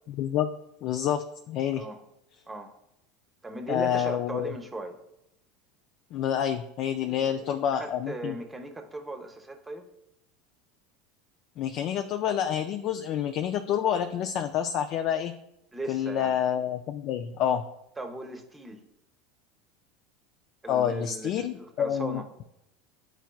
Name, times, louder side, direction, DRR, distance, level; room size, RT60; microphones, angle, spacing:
voice 1, 0.1-0.5 0.8-1.9 3.7-4.5 6.1-8.3 11.6-15.3 15.9-17.6 20.7-22.2, left 9 dB, 55° left, 6 dB, 0.4 m, -28 dB
voice 2, 3.4-5.0 7.1-9.9 15.7-16.4 18.0-18.8 20.6-22.2, right 2 dB, 15° right, 5 dB, 0.9 m, -38 dB
9.9 x 4.6 x 2.3 m, 0.83 s
hypercardioid pair, 95°, 0 cm